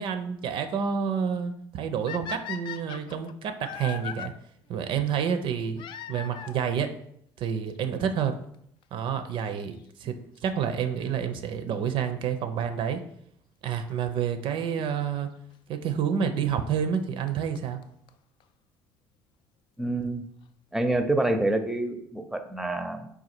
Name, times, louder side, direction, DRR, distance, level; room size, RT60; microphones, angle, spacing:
voice 1, 0.0-4.3 4.7-5.8 6.1-7.0 7.4-8.4 8.9-13.0 13.6-15.3 15.7-17.8, right 7 dB, 60° right, 9 dB, 0.5 m, -29 dB
sound 1, 2.1-4.3 5.8-6.8 7.8-7.9 8.5-8.6 8.8-8.9 10.8-11.1 13.9-14.0 15.0-15.1 16.6-16.7 16.9-17.0 17.3-17.4 17.6-17.7 17.8-17.9 18.1-18.2 18.4-18.5, left 8 dB, 55° left, 0.3 m, -38 dB
voice 2, 19.8-20.2 20.7-23.1, right 2 dB, 5° right, 6 dB, 0.5 m, -27 dB
3.9 x 2.3 x 4.3 m, 0.70 s
supercardioid pair, 75°, 10 cm